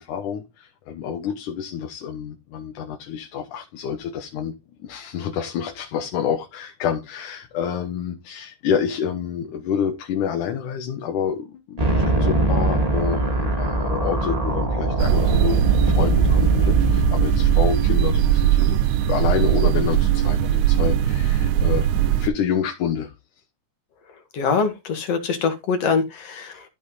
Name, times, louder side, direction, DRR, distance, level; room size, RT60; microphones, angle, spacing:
voice 1, 0.0-4.5 4.8-23.1, left 8 dB, 85° left, 2.7 m, -28 dB
sound 1, 11.8-19.8, right 2 dB, 15° right, 1.6 m, -23 dB
sound 2, 15.0-22.3, right 11 dB, 80° right, 2.2 m, -20 dB
voice 2, 24.3-26.6, left 5 dB, 55° left, 2.9 m, -23 dB
13.5 x 5.4 x 4.1 m
omnidirectional pair, 3.5 m